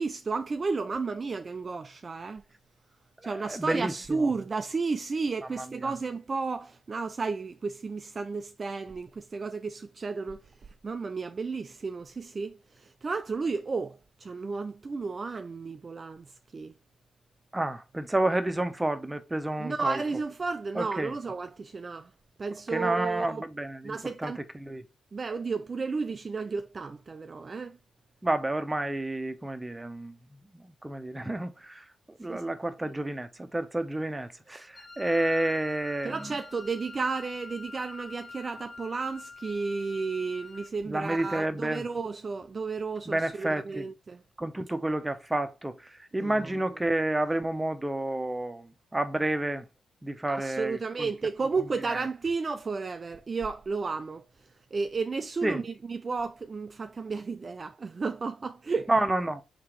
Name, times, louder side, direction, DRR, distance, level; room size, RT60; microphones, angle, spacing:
voice 1, 0.0-2.4 3.2-10.5 10.8-16.7 19.6-22.1 22.4-23.4 23.8-24.4 25.1-27.8 32.3-32.4 32.8-33.0 36.0-44.2 46.1-46.5 50.3-54.2 54.7-58.9, right 4 dB, 40° right, 0.3 m, -33 dB
voice 2, 3.2-4.3 5.6-5.9 17.5-20.0 20.7-21.1 22.7-24.8 28.2-30.2 30.5-36.3 40.8-41.9 43.1-43.9 44.4-49.7 50.0-51.1 51.9-52.0 55.4-55.6 58.9-59.4, right 1 dB, 15° right, 0.7 m, -30 dB
Wind instrument woodwind instrument, 34.7-40.8, left 4 dB, 20° left, 0.7 m, -45 dB
3.6 x 2.9 x 4.4 m
cardioid pair, 70°, 0 cm